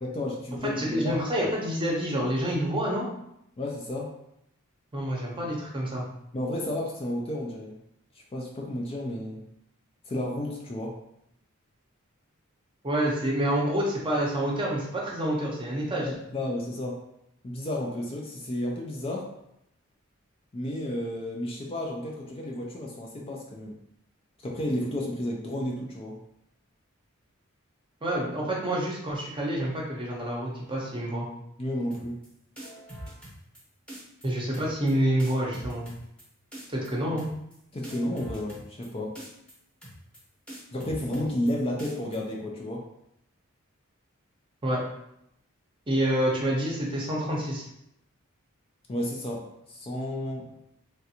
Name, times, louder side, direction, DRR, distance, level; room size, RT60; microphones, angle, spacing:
voice 1, 0.0-1.5 3.6-4.1 6.3-7.8 8.1-9.4 10.1-11.0 16.0-17.0 17.4-19.3 20.5-23.7 24.4-26.2 31.6-32.2 37.7-39.2 40.7-42.8 48.9-50.6, left 1 dB, 30° left, -1 dB, 0.4 m, -32 dB
voice 2, 0.6-3.1 4.9-6.1 12.8-16.1 28.0-31.3 34.2-35.9 36.7-37.3 44.6-44.8 45.9-47.7, right 1 dB, 25° right, -3 dB, 0.7 m, -28 dB
sound 1, 31.9-32.3 32.6-33.6 33.9-34.3 34.5-34.9 35.2-36.2 36.5-36.9 37.2-37.5 37.8-38.9 39.1-39.5 39.8-40.2 40.5-41.5 41.8-42.2, right 1 dB, 5° left, 0.9 m, -43 dB
3.3 x 2.5 x 2.8 m, 0.78 s
head